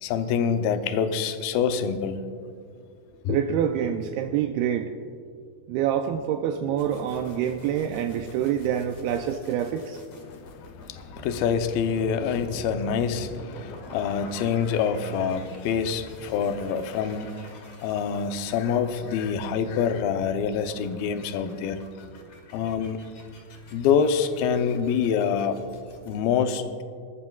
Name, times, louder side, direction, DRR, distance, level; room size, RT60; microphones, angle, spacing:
voice 1, 0.0-2.2 3.2-3.4 10.3-17.3 17.8-21.8 22.5-23.0 23.7-25.6 26.1-26.8, left 7 dB, 75° left, 8 dB, 2.2 m, -26 dB
voice 2, 3.3-4.9 5.7-10.0 21.5-21.6 22.1-22.4, right 9 dB, 85° right, 5 dB, 2.3 m, -27 dB
sound 1, 6.8-26.2, left 2 dB, 55° left, 2.6 m, -46 dB
27.5 x 13.5 x 2.4 m, 2.3 s
omnidirectional pair, 4.9 m